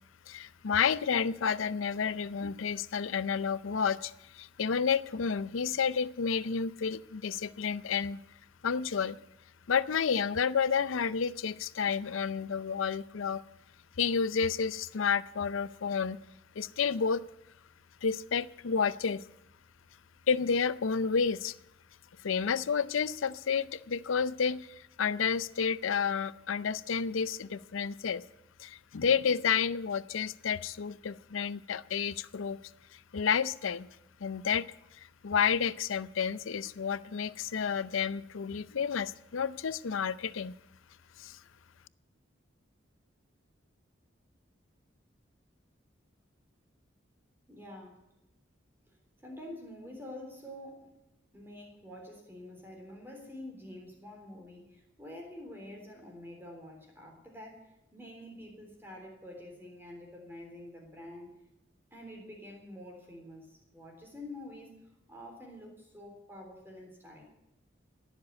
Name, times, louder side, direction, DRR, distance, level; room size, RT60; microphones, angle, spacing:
voice 1, 0.3-8.2 8.6-9.2 9.7-13.4 14.0-16.2 16.6-17.2 18.0-19.2 20.3-21.5 22.2-24.7 25.0-28.2 28.6-32.6 33.1-33.9 34.2-34.7 35.0-40.5 41.2-41.4, left 6 dB, 85° left, 17 dB, 0.5 m, -30 dB
voice 2, 47.5-48.0 49.2-50.9 51.3-61.3 61.9-64.7 65.1-67.2, left 1 dB, 10° right, 1 dB, 3.6 m, -47 dB
17.0 x 7.4 x 9.5 m, 0.90 s
head